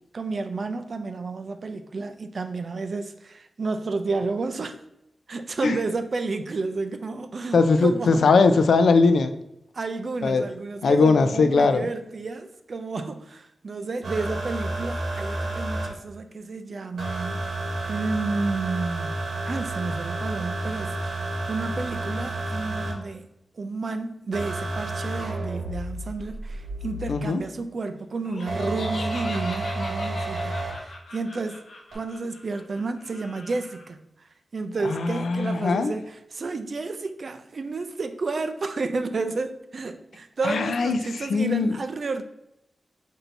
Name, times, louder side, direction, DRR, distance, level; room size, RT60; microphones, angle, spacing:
voice 1, 0.1-4.8 5.3-8.3 9.7-17.5 17.8-23.3 23.5-31.6 31.9-42.2, right 3 dB, 45° right, 0.4 m, -31 dB
voice 2, 7.5-9.3 10.2-10.4 10.8-11.9 27.1-27.4 34.8-35.9 40.4-41.7, left 4 dB, 80° left, 0.4 m, -20 dB
sound 1, 14.0-15.9 17.0-22.9 24.3-27.3 28.5-30.7 31.9-32.0, right 2 dB, 80° right, 0.9 m, -30 dB
Laughter, 28.2-33.8, left 2 dB, 55° left, 0.8 m, -40 dB
4.0 x 2.7 x 4.4 m
wide cardioid pair, 155°, 0 cm